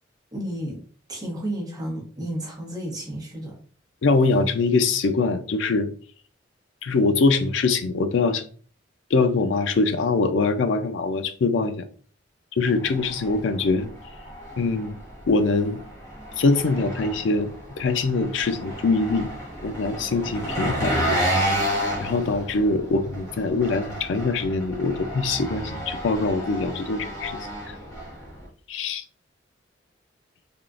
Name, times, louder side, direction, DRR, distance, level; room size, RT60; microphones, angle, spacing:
voice 1, 0.3-0.8 1.1-3.6, right 1 dB, 20° right, 1.0 m, -32 dB
voice 2, 4.0-5.9 6.8-8.4 9.1-11.9 12.5-13.9 14.6-14.9 15.3-15.8 16.4-19.3 19.6-21.2 22.0-27.7 28.7-29.0, left 3 dB, 80° left, 0.4 m, -23 dB
Engine, 12.7-28.5, equal, 15° left, 1.1 m, -31 dB
3.5 x 2.4 x 2.4 m
head